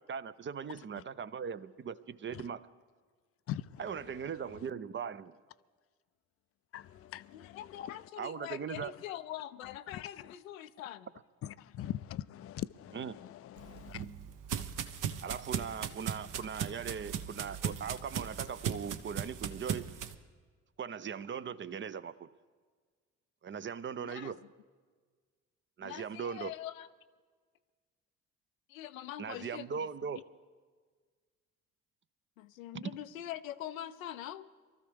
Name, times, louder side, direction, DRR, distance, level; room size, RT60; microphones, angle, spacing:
voice 1, 0.1-2.7 3.8-5.3 8.2-8.9 12.9-13.2 15.2-19.9 20.8-22.3 23.4-24.4 25.8-26.5 29.2-30.2 32.7-32.8, right 7 dB, 30° right, 0.5 m, -39 dB
voice 2, 0.7-1.0 2.3-2.4 3.5-3.8 6.7-7.8 8.8-8.9 9.9-10.3 11.4-14.0, left 12 dB, 35° left, 0.4 m, -42 dB
voice 3, 7.3-11.1 16.4-16.5 24.0-24.3 25.8-26.9 28.7-29.9 32.4-34.5, left 12 dB, 85° left, 0.6 m, -44 dB
sound 1, 13.6-20.1, right 8 dB, 50° right, 0.9 m, -38 dB
23.0 x 13.5 x 3.5 m
hypercardioid pair, 50°, 40 cm